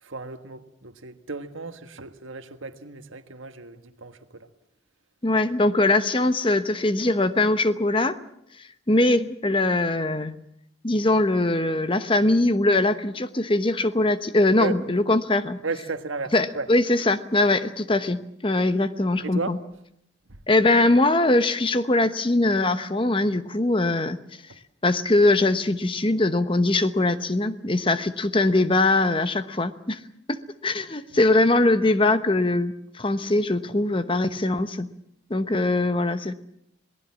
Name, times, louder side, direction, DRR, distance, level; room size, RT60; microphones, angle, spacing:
voice 1, 0.0-4.5 14.6-14.8 15.6-16.7 19.2-19.6 20.3-20.4 24.5-24.6 31.1-31.2, right 3 dB, 80° right, 1.5 m, -34 dB
voice 2, 5.2-8.2 8.9-10.4 10.8-15.6 16.3-19.6 20.5-24.2 24.8-30.0 30.3-34.9 35.3-36.3, left 2 dB, 25° left, 0.9 m, -22 dB
27.0 x 19.0 x 7.4 m
head